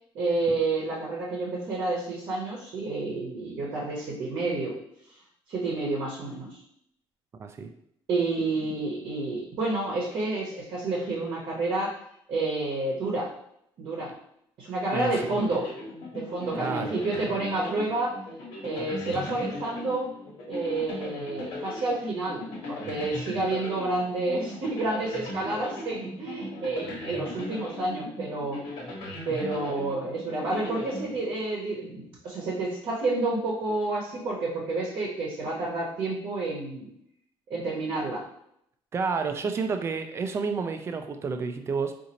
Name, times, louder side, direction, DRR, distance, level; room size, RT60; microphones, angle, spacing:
voice 1, 0.1-4.8 5.5-6.5 8.1-12.0 12.3-13.3 13.8-14.1 14.6-15.7 16.1-18.2 18.6-20.1 20.5-28.6 29.2-36.9 37.5-38.2, right 2 dB, 55° right, -4 dB, 0.8 m, -29 dB
voice 2, 14.9-15.3 16.6-17.0 38.9-41.9, right 4 dB, 30° right, 7 dB, 0.3 m, -30 dB
sound 1, 15.1-31.7, left 1 dB, 90° left, 1.2 m, -38 dB
3.9 x 2.6 x 2.9 m, 0.74 s
cardioid pair, 150°, 10 cm